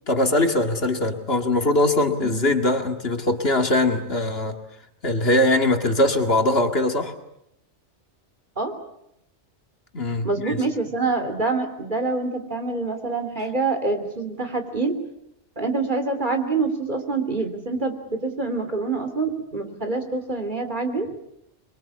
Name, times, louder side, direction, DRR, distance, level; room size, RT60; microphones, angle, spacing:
voice 1, 0.1-4.6 5.0-7.1 9.9-10.6, left 1 dB, 55° left, 5 dB, 2.3 m, -21 dB
voice 2, 10.2-15.0 15.6-21.1, right 3 dB, 40° right, 6 dB, 3.3 m, -26 dB
27.0 x 23.0 x 8.5 m, 0.80 s
omnidirectional pair, 1.2 m